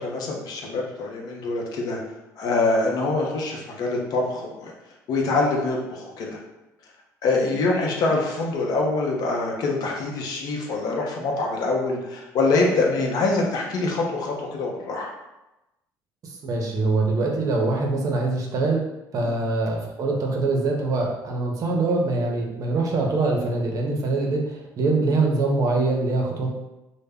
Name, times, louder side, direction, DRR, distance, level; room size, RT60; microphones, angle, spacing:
voice 1, 0.0-2.0 2.4-4.7 5.1-6.3 7.2-15.1 19.2-19.4, left 3 dB, 60° left, 0 dB, 0.6 m, -24 dB
voice 2, 16.2-18.8 19.1-26.6, right 3 dB, 50° right, 0 dB, 0.6 m, -24 dB
2.0 x 2.0 x 3.5 m, 0.96 s
supercardioid pair, 80°, 8 cm